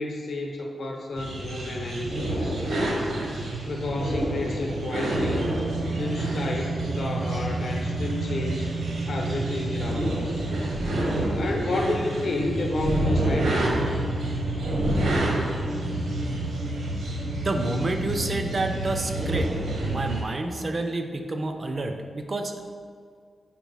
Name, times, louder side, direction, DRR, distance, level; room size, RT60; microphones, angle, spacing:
voice 1, 0.0-2.8 3.7-5.5 6.0-8.7 9.1-10.4 11.4-13.7, left 2 dB, 60° left, 1 dB, 0.8 m, -31 dB
sound 1, 1.2-20.2, right 1 dB, 80° right, 1.1 m, -28 dB
voice 2, 17.4-19.5 19.8-22.5, right 2 dB, 30° right, 5 dB, 0.4 m, -29 dB
4.6 x 4.5 x 5.5 m, 2.1 s
wide cardioid pair, 170°, 0 cm